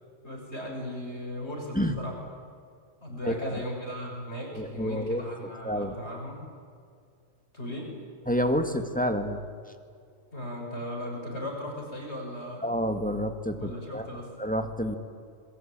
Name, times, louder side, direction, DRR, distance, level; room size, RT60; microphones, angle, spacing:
voice 1, 0.2-2.2 3.0-6.4 7.5-7.9 10.3-12.7 13.6-14.3, left 1 dB, 60° left, 0 dB, 6.6 m, -37 dB
voice 2, 3.2-3.6 4.5-5.3 5.6-6.0 8.3-9.5 12.6-14.1 14.4-15.0, equal, 5° left, 6 dB, 1.9 m, -29 dB
27.0 x 22.5 x 8.9 m, 2.2 s
omnidirectional pair, 1.3 m